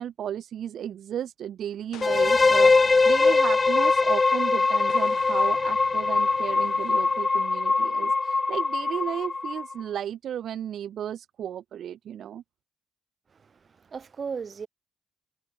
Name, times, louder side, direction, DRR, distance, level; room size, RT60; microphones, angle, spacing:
voice 1, 0.0-12.4, right 10 dB, 65° right, 0.7 m, -34 dB
Explosion, 1.9-4.4 4.9-7.4, left 13 dB, 80° left, 2.2 m, -48 dB
sound 1, 2.0-9.8, left 3 dB, 25° left, 1.0 m, -22 dB
voice 2, 13.4-14.7, right 6 dB, 40° right, 3.4 m, -36 dB
cardioid pair, 90°, 0 cm